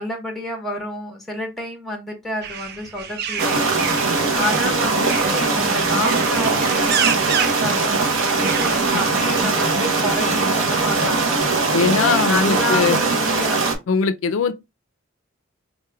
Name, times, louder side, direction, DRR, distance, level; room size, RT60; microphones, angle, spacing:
voice 1, 0.0-3.7 4.4-11.4 12.2-13.6, left 1 dB, ahead, 1.1 m, -29 dB
sound 1, 2.4-9.4, right 8 dB, 55° right, 0.4 m, -29 dB
sound 2, 3.4-13.8, right 3 dB, 85° right, 0.9 m, -20 dB
voice 2, 11.7-13.0 13.9-14.5, left 5 dB, 70° left, 0.3 m, -20 dB
4.0 x 3.2 x 2.2 m
head